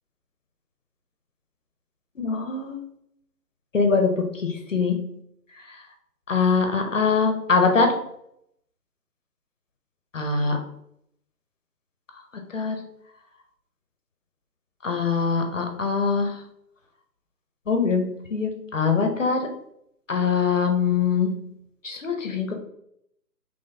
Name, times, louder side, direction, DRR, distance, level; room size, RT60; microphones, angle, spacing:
voice 1, 2.2-2.8 3.7-5.1 6.3-8.0 10.1-10.6 12.5-12.8 14.8-16.4 17.7-19.5 20.1-21.5 21.8-22.5, left 5 dB, 50° left, 4 dB, 0.6 m, -23 dB
3.8 x 3.0 x 2.6 m, 0.74 s
figure-of-eight pair, 155°, 50 cm